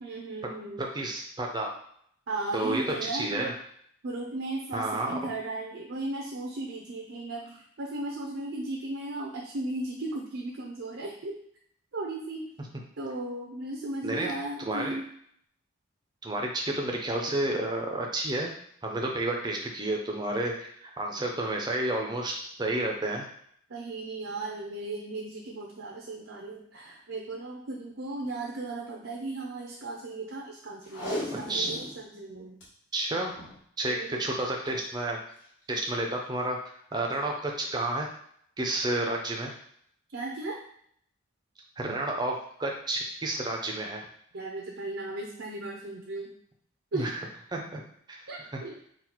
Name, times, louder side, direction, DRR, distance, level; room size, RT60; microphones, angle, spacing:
voice 1, 0.0-0.8 2.3-3.5 4.0-11.3 11.9-12.5 13.0-15.0 23.7-32.6 33.8-34.3 40.1-40.6 44.3-46.3 46.9-47.1 48.3-48.8, right 2 dB, 65° right, -2 dB, 0.6 m, -36 dB
voice 2, 0.8-1.7 2.5-3.5 4.7-5.2 14.0-14.3 14.6-15.0 16.2-18.6 18.8-23.3 31.5-31.7 32.9-33.4 33.8-35.2 35.7-36.6 36.9-38.1 38.6-39.5 41.8-44.0 46.9-47.2 47.5-47.8 48.1-48.3, right 2 dB, 20° right, 1 dB, 0.6 m, -30 dB
Packing tape duct tape, 30.8-32.0 32.3-32.4 32.6-32.7 33.3-33.6 34.6-34.8 35.4-35.5, left 1 dB, 60° left, 1.8 m, -36 dB
4.0 x 2.4 x 4.4 m, 0.66 s
head